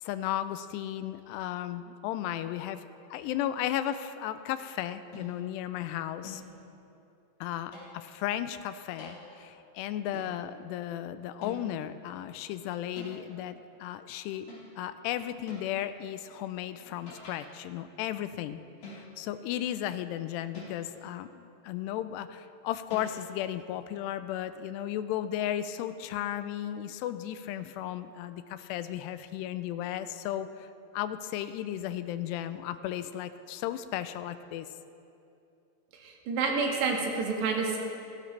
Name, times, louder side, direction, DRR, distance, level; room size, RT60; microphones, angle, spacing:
voice 1, 0.0-6.4 7.4-14.5 14.8-18.6 18.9-30.7 30.9-34.7, left 11 dB, 85° left, 12 dB, 2.7 m, -35 dB
sound 1, 5.1-5.6 6.2-6.6 7.7-8.1 9.0-9.3 10.1-10.4 11.4-11.9 13.0-13.3 14.5-14.8 15.5-15.8 16.8-17.6 18.8-19.3 20.5-21.1 22.9-23.1, left 2 dB, 50° left, 5.8 m, -46 dB
voice 2, 35.9-37.8, right 4 dB, 85° right, 1 dB, 3.9 m, -29 dB
29.0 x 12.0 x 3.3 m, 2.7 s
omnidirectional pair, 4.9 m